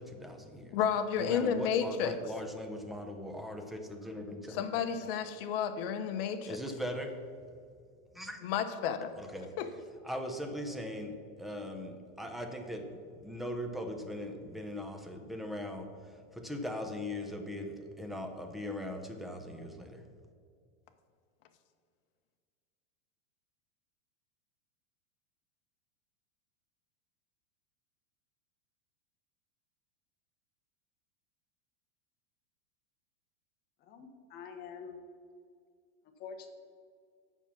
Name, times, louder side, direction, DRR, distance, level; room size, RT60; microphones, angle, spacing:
voice 1, 0.0-0.8 1.2-4.8 6.4-7.2 8.1-8.4 9.2-9.5 10.0-20.0, left 1 dB, ahead, 4 dB, 0.4 m, -40 dB
voice 2, 0.7-2.1 4.5-6.6 8.4-9.1 9.6-9.7, left 8 dB, 50° left, 8 dB, 0.9 m, -31 dB
voice 3, 33.9-35.0 36.2-36.5, left 6 dB, 25° left, 5 dB, 1.0 m, -46 dB
7.3 x 5.8 x 7.0 m, 2.2 s
supercardioid pair, 150°, 35 cm